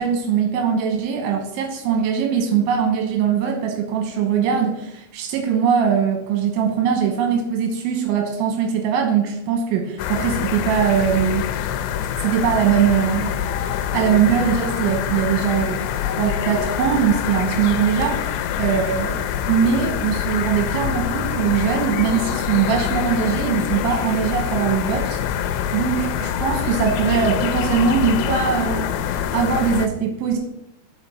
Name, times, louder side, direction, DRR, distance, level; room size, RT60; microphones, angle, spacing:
voice 1, 0.0-11.5 12.2-30.4, right 7 dB, 85° right, 3 dB, 3.5 m, -21 dB
sound 1, 10.0-29.9, left 9 dB, 80° left, 2.6 m, -25 dB
13.0 x 4.4 x 4.2 m, 0.84 s
omnidirectional pair, 5.3 m